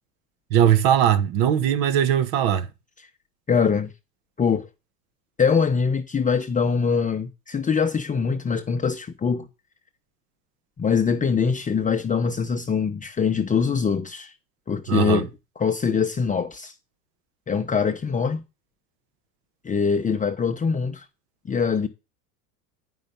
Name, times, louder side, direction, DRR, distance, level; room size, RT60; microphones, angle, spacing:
voice 1, 0.5-2.7 14.9-15.2, right 9 dB, 55° right, 1.3 m, -20 dB
voice 2, 3.5-3.9 4.4-4.7 5.4-9.5 10.8-14.3 14.7-15.3 15.6-16.7 17.5-18.4 19.6-21.0 21.4-21.9, left 6 dB, 15° left, 0.8 m, -23 dB
9.0 x 5.6 x 5.4 m
hypercardioid pair, 100°, 48 cm